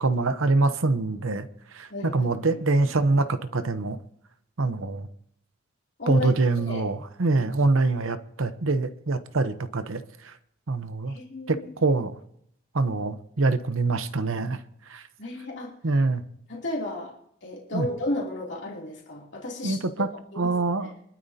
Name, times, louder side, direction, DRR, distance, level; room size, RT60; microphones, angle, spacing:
voice 1, 0.0-1.5 1.7-4.0 4.6-5.1 6.1-10.3 10.7-11.2 11.5-12.2 12.7-14.6 14.9-15.0 15.8-16.2 17.7-17.9 19.6-20.1 20.4-20.9, right 3 dB, 75° right, 0.9 m, -25 dB
voice 2, 1.9-2.3 6.0-6.3 6.6-6.9 11.1-12.0 15.2-15.7 16.5-17.1 17.4-19.8 20.3-20.5, left 1 dB, 55° left, 2.9 m, -33 dB
24.5 x 12.0 x 2.8 m
head